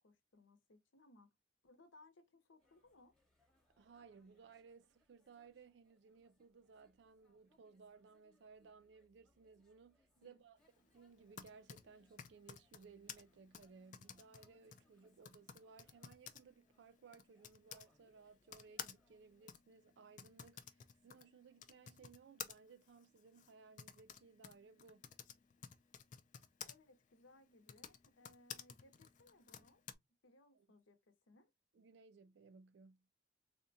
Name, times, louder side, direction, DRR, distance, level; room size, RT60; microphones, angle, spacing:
voice 1, 0.0-1.3 1.6-3.1 10.2-10.4 26.6-29.8 30.2-31.5, left 2 dB, 80° left, 0.7 m, -66 dB
sound 1, 2.6-19.5, left 1 dB, ahead, 0.8 m, -79 dB
voice 2, 3.8-25.1 30.5-30.7 31.7-33.1, right 5 dB, 60° right, 0.3 m, -61 dB
Typing, 11.1-17.9 18.5-26.7 27.5-29.9, left 8 dB, 40° left, 0.3 m, -54 dB
3.6 x 2.1 x 2.6 m
head